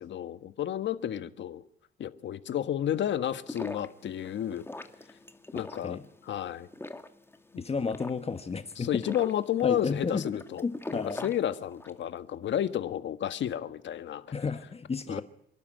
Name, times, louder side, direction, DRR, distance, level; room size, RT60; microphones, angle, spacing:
voice 1, 0.0-1.6 2.0-4.7 5.5-6.0 6.3-6.7 8.8-10.6 11.2-14.3 15.1-15.2, left 10 dB, 65° left, 1.5 m, -31 dB
sound 1, 3.2-12.1, left 2 dB, 10° left, 2.1 m, -43 dB
voice 2, 7.6-8.9 9.2-9.3 9.6-10.3 10.6-11.3 14.3-15.2, left 5 dB, 30° left, 1.6 m, -32 dB
27.5 x 12.0 x 9.3 m
cardioid pair, 90°, 20 cm